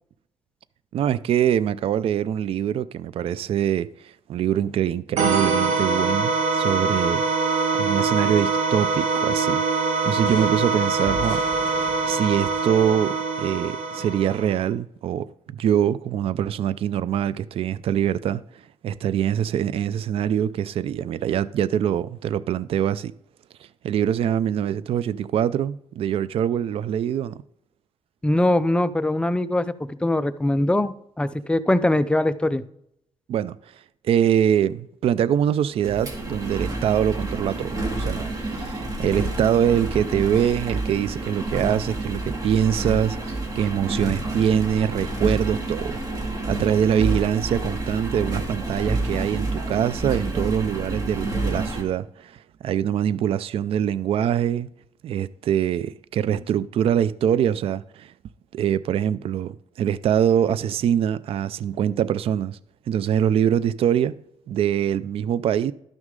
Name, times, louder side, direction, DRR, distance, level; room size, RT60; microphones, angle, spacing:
voice 1, 0.9-7.2 7.8-9.6 10.0-11.4 11.8-18.4 18.8-23.1 23.8-27.3 33.3-33.6 34.0-46.0 46.5-54.7 55.0-58.1 58.5-62.6 62.9-64.2 64.5-65.7, right 9 dB, 60° right, 0.4 m, -24 dB
sound 1, 5.2-14.6, right 4 dB, 85° right, 1.1 m, -23 dB
sound 2, 10.2-13.9, left 4 dB, 55° left, 1.7 m, -40 dB
voice 2, 28.2-32.6, left 1 dB, 10° left, 0.4 m, -22 dB
Engine, 35.8-51.8, right 2 dB, 35° right, 2.0 m, -29 dB
12.0 x 6.2 x 3.8 m
cardioid pair, 110°, 11 cm